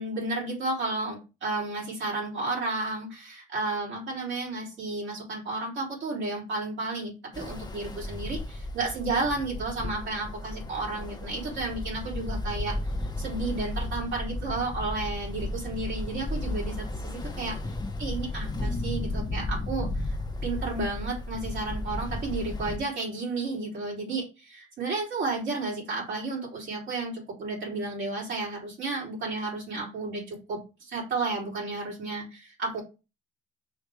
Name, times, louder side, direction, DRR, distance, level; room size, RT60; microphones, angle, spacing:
voice 1, 0.0-12.8 13.2-20.2 20.4-32.8, right 3 dB, 70° right, -4 dB, 4.0 m, -32 dB
Ocean, 7.3-22.8, left 2 dB, 20° left, 0.9 m, -34 dB
5.6 x 3.4 x 4.9 m, 0.29 s
cardioid pair, 90°, 20 cm